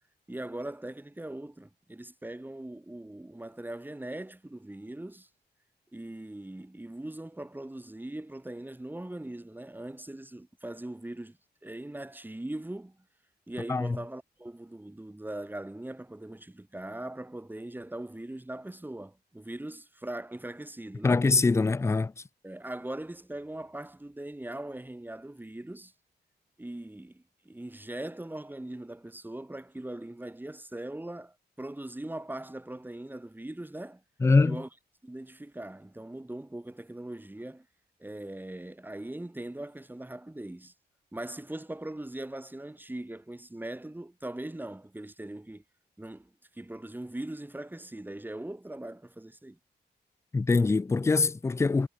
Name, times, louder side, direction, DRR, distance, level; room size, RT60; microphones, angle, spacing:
voice 1, 0.3-5.3 5.9-13.0 13.5-21.3 22.4-25.9 26.6-34.0 34.4-34.7 35.0-37.7 38.0-40.7 41.1-45.6 46.0-49.6, right 1 dB, 10° right, 2.8 m, -40 dB
voice 2, 21.0-22.1 34.2-34.6 50.3-51.9, left 3 dB, 15° left, 0.4 m, -23 dB
cardioid pair, 90°, 18 cm